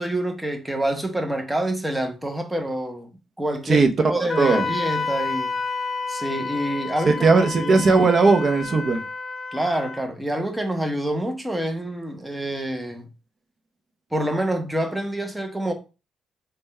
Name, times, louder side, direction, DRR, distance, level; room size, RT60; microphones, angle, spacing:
voice 1, 0.0-3.1 3.4-5.5 6.1-7.8 9.5-13.1 14.1-15.7, right 1 dB, 10° right, 0.8 m, -27 dB
voice 2, 4.2-4.7 7.1-9.0, right 4 dB, 45° right, 0.7 m, -18 dB
Wind instrument woodwind instrument, 4.3-10.1, left 4 dB, 35° left, 0.5 m, -30 dB
3.5 x 2.2 x 4.1 m
cardioid pair, 90°, 0 cm